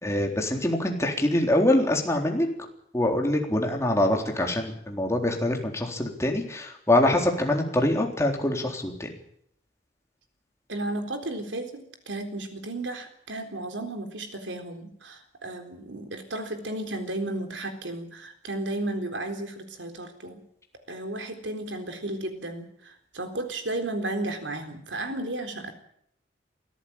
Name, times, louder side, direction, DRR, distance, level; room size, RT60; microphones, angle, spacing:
voice 1, 0.0-2.5 2.9-9.1, left 1 dB, 15° left, 2 dB, 3.9 m, -24 dB
voice 2, 10.7-20.4 20.9-25.7, right 2 dB, 85° right, 6 dB, 3.9 m, -34 dB
24.0 x 14.5 x 8.9 m, 0.70 s
head